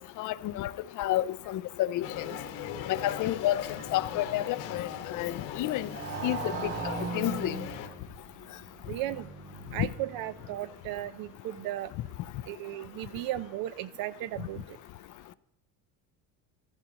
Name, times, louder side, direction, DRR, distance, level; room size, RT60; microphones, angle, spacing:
voice 1, 0.2-0.7 1.0-2.3 2.9-3.6 3.9-5.9 6.2-6.7 7.1-7.6 9.8-9.9, left 14 dB, 50° left, 0.5 m, -30 dB
sound 1, 2.0-7.9, left 8 dB, 80° left, 1.5 m, -39 dB
Motorcycle, 2.8-10.9, right 4 dB, 40° right, 2.6 m, -41 dB
voice 2, 8.9-9.3 9.7-11.9 12.5-14.7, right 14 dB, 60° right, 0.6 m, -35 dB
14.5 x 13.0 x 3.0 m
supercardioid pair, 110°, 39 cm